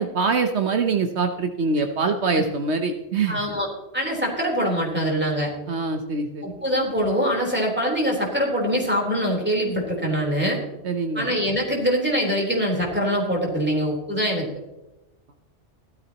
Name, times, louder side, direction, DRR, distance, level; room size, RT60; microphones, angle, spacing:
voice 1, 0.0-3.4 5.7-6.5 10.8-11.3, right 4 dB, 70° right, 6 dB, 1.2 m, -24 dB
voice 2, 3.3-3.7 3.9-5.5 6.4-10.6 11.2-14.5, equal, 10° right, -2 dB, 3.8 m, -23 dB
15.5 x 13.0 x 3.0 m, 0.98 s
omnidirectional pair, 1.2 m